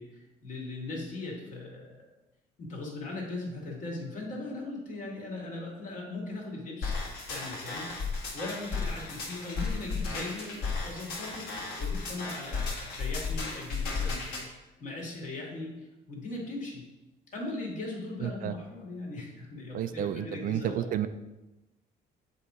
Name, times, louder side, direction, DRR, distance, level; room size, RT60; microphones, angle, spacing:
voice 1, 0.0-2.0 2.6-7.0 7.3-7.9 8.3-11.4 11.8-16.8 17.3-20.9, left 2 dB, 50° left, -2 dB, 2.0 m, -39 dB
sound 1, 6.8-14.4, left 4 dB, 70° left, 1.9 m, -34 dB
voice 2, 18.2-18.5 19.7-21.1, right 10 dB, 55° right, 10 dB, 0.4 m, -31 dB
7.5 x 2.9 x 4.8 m, 1.0 s
cardioid pair, 110°, 17 cm